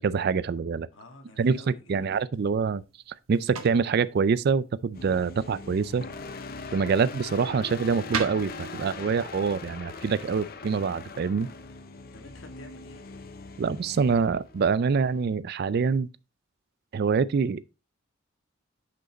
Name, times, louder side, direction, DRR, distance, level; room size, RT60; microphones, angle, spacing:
voice 1, 0.0-0.9 1.4-1.6 1.9-2.8 3.3-6.0 6.7-11.5 13.6-16.1 16.9-17.7, right 5 dB, 50° right, 0.3 m, -25 dB
voice 2, 0.9-2.3 12.1-13.0, left 1 dB, 65° left, 1.7 m, -50 dB
sound 1, 2.3-11.5, right 5 dB, 90° right, 1.2 m, -42 dB
sound 2, 4.9-15.2, left 4 dB, 45° left, 0.7 m, -41 dB
6.4 x 5.4 x 3.9 m
head